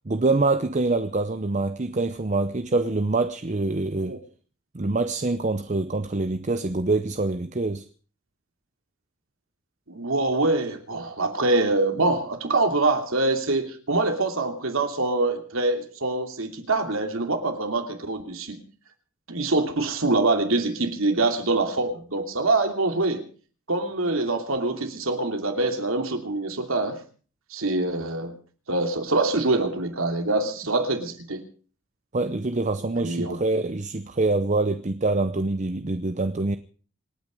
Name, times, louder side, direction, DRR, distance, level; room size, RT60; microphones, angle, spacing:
voice 1, 0.1-4.2 4.7-7.9 32.1-36.6, right 3 dB, 35° right, 0.7 m, -25 dB
voice 2, 9.9-18.6 19.3-23.2 23.7-27.0 27.5-28.3 28.7-31.4 33.0-33.4, right 2 dB, 75° right, 2.8 m, -25 dB
26.5 x 9.5 x 5.3 m
head